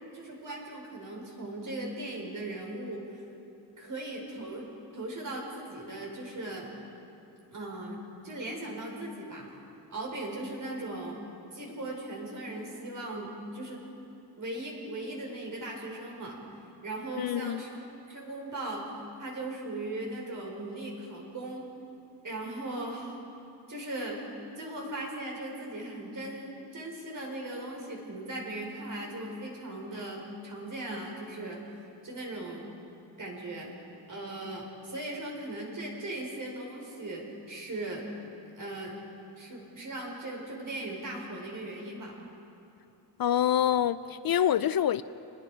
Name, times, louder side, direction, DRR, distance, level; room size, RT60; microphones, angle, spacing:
voice 1, 0.1-3.3 3.8-4.6 4.9-6.7 7.5-9.5 9.9-11.2 11.5-13.9 14.4-16.4 16.8-18.9 19.2-21.7 22.2-23.2 23.7-24.2 24.6-31.6 32.0-32.7 33.2-33.7 34.1-38.0 38.6-38.9 39.4-42.2, right 1 dB, 45° right, 5.2 m, -38 dB
voice 2, 17.2-17.6 43.2-45.0, left 10 dB, 55° left, 0.5 m, -26 dB
30.0 x 20.5 x 5.1 m
wide cardioid pair, 150°, 43 cm